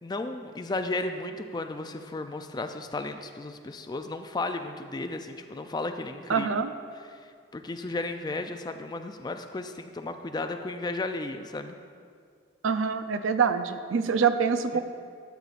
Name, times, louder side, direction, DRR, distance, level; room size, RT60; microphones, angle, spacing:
voice 1, 0.0-6.5 7.1-11.8 14.7-14.8, left 2 dB, 20° left, 7 dB, 0.3 m, -34 dB
voice 2, 6.3-6.7 12.6-14.8, right 6 dB, 75° right, 10 dB, 0.4 m, -25 dB
13.0 x 8.2 x 2.5 m, 2.1 s
head